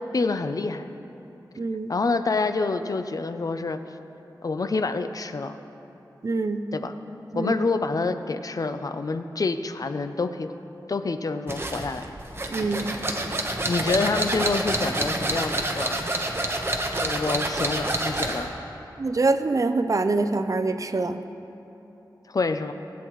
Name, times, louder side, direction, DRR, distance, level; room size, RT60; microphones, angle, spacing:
voice 1, 0.1-0.9 1.9-3.8 4.4-5.6 6.7-6.9 7.3-10.5 10.9-12.1 13.7-16.0 17.0-18.5 22.3-22.7, left 3 dB, 50° left, 9 dB, 0.5 m, -27 dB
voice 2, 1.6-1.9 6.2-6.7 7.3-7.5 12.5-12.9 19.0-21.2, right 3 dB, 45° right, 9 dB, 0.5 m, -25 dB
sound 1, 11.5-18.5, right 1 dB, 30° right, 1.0 m, -28 dB
20.0 x 8.3 x 3.1 m, 3.0 s
wide cardioid pair, 90°, 8 cm